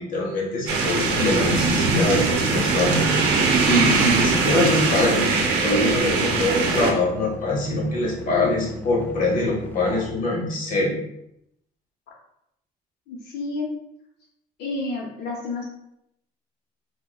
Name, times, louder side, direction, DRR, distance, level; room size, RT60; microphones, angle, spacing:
voice 1, 0.0-3.1 3.7-5.3 5.6-10.9, left 2 dB, 50° left, -2 dB, 0.9 m, -23 dB
sound 1, 0.7-6.9, right 4 dB, 85° right, 0.6 m, -21 dB
sound 2, 1.1-10.1, left 1 dB, 10° left, 0.4 m, -39 dB
voice 2, 13.1-13.8 14.6-15.6, left 3 dB, 80° left, -3 dB, 0.6 m, -30 dB
4.5 x 2.1 x 2.2 m, 0.80 s
cardioid pair, 110°, 17 cm